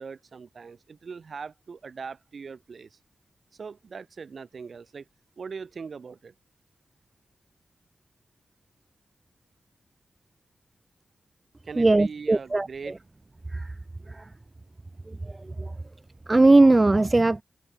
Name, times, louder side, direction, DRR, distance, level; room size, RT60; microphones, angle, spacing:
voice 1, 0.0-3.0 3.5-5.1 5.4-6.3 11.6-13.0, right 5 dB, 70° right, 4.7 m, -40 dB
voice 2, 11.8-12.9 13.5-13.8 14.1-14.3 15.1-15.7 16.3-17.4, right 2 dB, 30° right, 0.5 m, -20 dB
cardioid pair, 55°, 0 cm